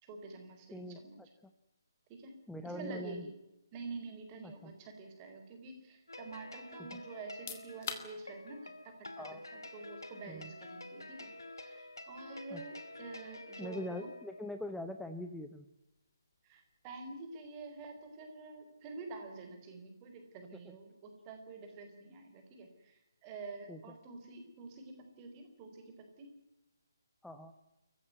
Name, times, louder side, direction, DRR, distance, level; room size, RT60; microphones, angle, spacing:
voice 1, 0.0-1.2 2.1-2.3 2.6-3.3 3.7-9.1 9.5-11.3 11.6-14.1 16.4-26.3, right 3 dB, 20° right, 4 dB, 4.5 m, -48 dB
voice 2, 0.7-1.3 2.5-3.2 4.4-4.7 6.8-7.0 9.2-9.4 10.3-10.5 12.5-12.6 13.6-15.7 20.7-20.8 23.7-23.8 27.2-27.5, left 1 dB, ahead, 7 dB, 0.9 m, -43 dB
sound 1, 6.1-14.5, left 2 dB, 70° left, 2.4 m, -49 dB
sound 2, 7.2-19.9, left 7 dB, 40° left, 2.6 m, -54 dB
27.5 x 15.5 x 9.4 m, 0.96 s
figure-of-eight pair, 140°, 2 cm